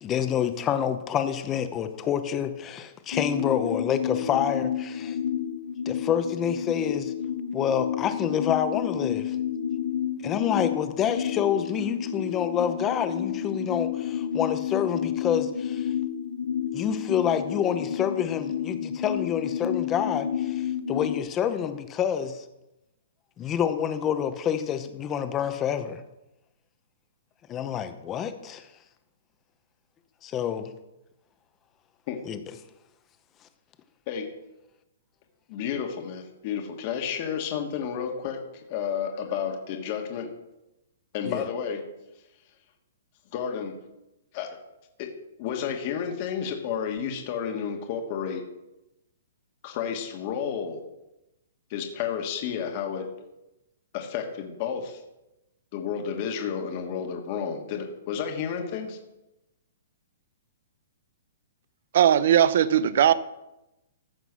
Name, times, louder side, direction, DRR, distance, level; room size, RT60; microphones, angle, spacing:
voice 1, 0.0-5.2 5.9-7.1 7.5-9.4 10.2-15.9 16.7-22.4 23.4-26.0 27.5-28.7 30.2-30.7 32.3-32.4 41.2-41.4, left 9 dB, 15° left, 0.8 m, -28 dB
sound 1, 3.1-21.2, left 9 dB, 70° left, 0.9 m, -30 dB
voice 2, 35.5-38.4 38.7-40.3 41.1-41.8 43.3-43.7 44.3-44.5 45.0-45.1 45.4-48.4 49.6-50.8 51.7-53.1 53.9-55.0 55.7-59.0, left 7 dB, 35° left, 1.6 m, -31 dB
voice 3, 61.9-63.1, right 10 dB, 50° right, 0.6 m, -19 dB
15.0 x 6.0 x 6.2 m
hypercardioid pair, 170°, 0 cm